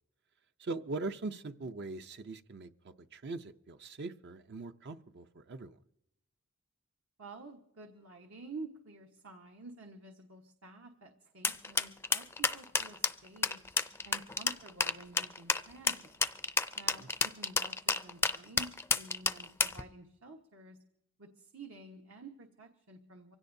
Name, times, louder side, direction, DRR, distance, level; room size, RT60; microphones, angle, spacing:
voice 1, 0.6-2.7 3.1-5.8, right 3 dB, 55° right, 9 dB, 0.6 m, -41 dB
voice 2, 7.2-13.6 14.0-16.2 16.8-20.8 21.2-23.4, right 3 dB, 70° right, 2 dB, 1.2 m, -50 dB
sound 1, 11.4-19.8, left 4 dB, 10° left, 0.4 m, -30 dB
24.5 x 16.5 x 2.7 m, 0.79 s
head